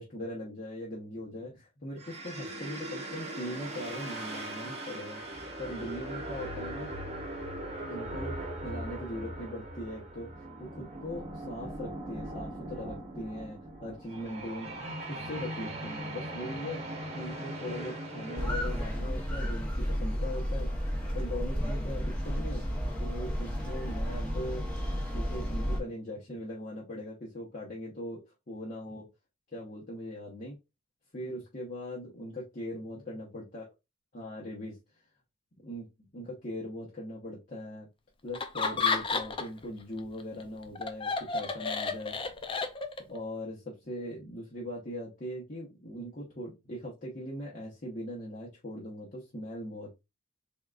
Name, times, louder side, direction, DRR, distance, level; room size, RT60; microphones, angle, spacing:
voice 1, 0.0-5.2 5.6-6.9 7.9-10.3 10.6-22.6 23.0-29.1 29.5-30.6 31.1-33.6 34.1-34.8 35.6-35.8 36.1-37.9 38.2-42.2 43.1-49.9, left 1 dB, 40° left, -4 dB, 1.0 m, -40 dB
sound 1, 2.0-18.9, right 1 dB, 35° right, 1.0 m, -40 dB
sound 2, 18.4-25.8, equal, 5° left, 0.9 m, -32 dB
Laughter, 38.3-39.6 40.0-43.2, left 4 dB, 25° left, 0.4 m, -31 dB
3.7 x 3.6 x 2.4 m, 0.23 s
head